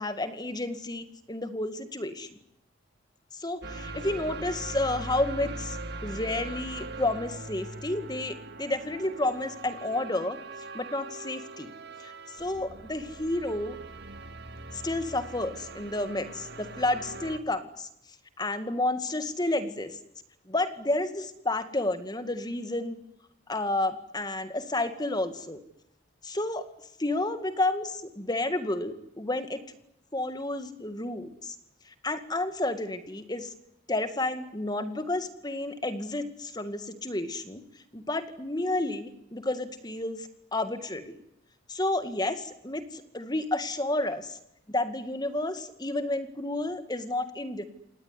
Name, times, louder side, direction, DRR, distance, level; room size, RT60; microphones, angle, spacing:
voice 1, 0.0-2.4 3.3-10.4 10.7-11.7 12.0-13.8 14.7-17.9 18.4-20.0 20.5-23.0 23.5-25.6 26.2-26.6 27.0-29.6 30.1-31.6 31.9-33.5 33.9-37.6 37.9-41.2 41.7-44.4 44.7-47.6, left 2 dB, 20° left, 10 dB, 2.1 m, -31 dB
sound 1, 3.6-17.4, right 2 dB, 55° right, 2.1 m, -41 dB
27.0 x 19.0 x 9.9 m, 0.78 s
head